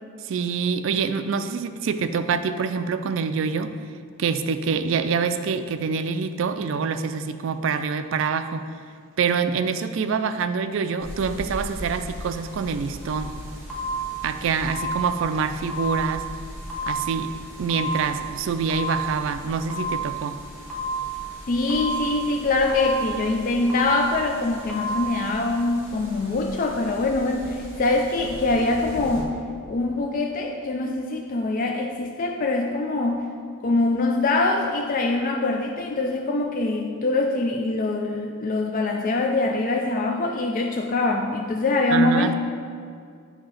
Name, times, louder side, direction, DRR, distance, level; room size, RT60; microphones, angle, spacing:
voice 1, 0.2-3.7 4.2-8.7 9.2-13.3 14.2-16.3 16.9-17.3 17.6-20.4 41.9-42.3, right 5 dB, 60° right, 9 dB, 0.3 m, -26 dB
sound 1, 11.0-29.2, equal, 15° right, 1.5 m, -40 dB
sound 2, 13.0-13.3 13.7-14.3 14.7-15.3 15.7-16.3 16.7-17.3 17.7-18.3 18.7-19.3 19.7-20.3 20.7-21.3 21.7-22.3 22.7-23.3 23.7-24.3 24.7-25.1, right 2 dB, 5° left, 1.1 m, -30 dB
voice 2, 21.5-29.3 29.7-33.3 33.6-42.3, left 2 dB, 40° left, 1 dB, 0.3 m, -24 dB
7.7 x 2.8 x 5.7 m, 2.2 s
head